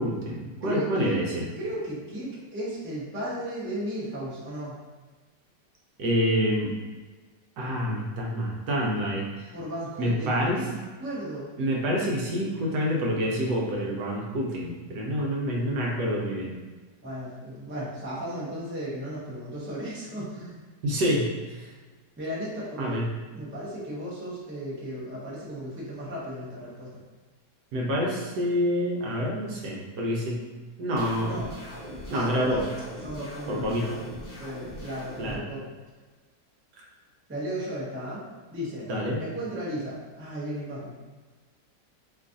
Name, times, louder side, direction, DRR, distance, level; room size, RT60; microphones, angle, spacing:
voice 1, 0.0-1.5 6.0-6.7 7.6-9.5 10.0-10.6 11.6-16.5 20.8-21.7 22.8-23.1 27.7-30.4 30.8-31.4 32.1-32.6 33.5-34.0 35.2-35.4 36.8-36.9 38.9-39.2, equal, 75° right, -2 dB, 1.2 m, -27 dB
voice 2, 0.6-1.1 1.6-4.8 9.5-11.5 17.0-20.6 22.2-23.0 23.3-26.9 31.2-31.5 32.1-32.6 33.0-33.9 34.4-35.7 37.3-38.2 38.5-38.9 39.2-40.9, equal, 15° right, -8 dB, 0.4 m, -35 dB
sound 1, 31.0-35.3, equal, 80° left, 0.4 m, -41 dB
3.1 x 2.4 x 3.8 m, 1.3 s
omnidirectional pair, 1.8 m